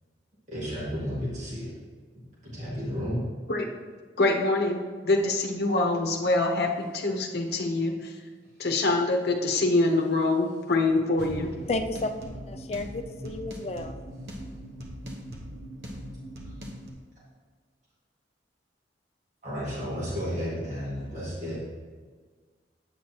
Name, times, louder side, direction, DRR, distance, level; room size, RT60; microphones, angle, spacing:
voice 1, 0.5-1.7 2.4-3.2 16.4-16.5 19.4-21.6, equal, 40° right, -8 dB, 2.0 m, -32 dB
voice 2, 4.2-8.0 8.6-11.5, left 2 dB, 60° left, 2 dB, 0.8 m, -25 dB
sound 1, 11.2-16.9, equal, 65° right, 1.0 m, -40 dB
voice 3, 11.4-14.0, left 2 dB, 35° left, 6 dB, 0.4 m, -33 dB
8.3 x 6.2 x 2.9 m, 1.5 s
head